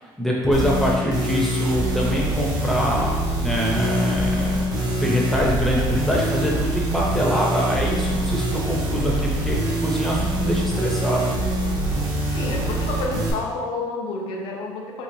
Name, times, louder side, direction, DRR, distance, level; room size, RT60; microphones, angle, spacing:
voice 1, 0.2-11.3, equal, 5° left, -3 dB, 0.7 m, -24 dB
sound 1, 0.5-13.3, right 1 dB, 45° right, 0.9 m, -24 dB
voice 2, 12.3-15.0, left 3 dB, 90° left, 1 dB, 0.6 m, -29 dB
3.9 x 3.1 x 2.7 m, 1.4 s
cardioid pair, 130°, 9 cm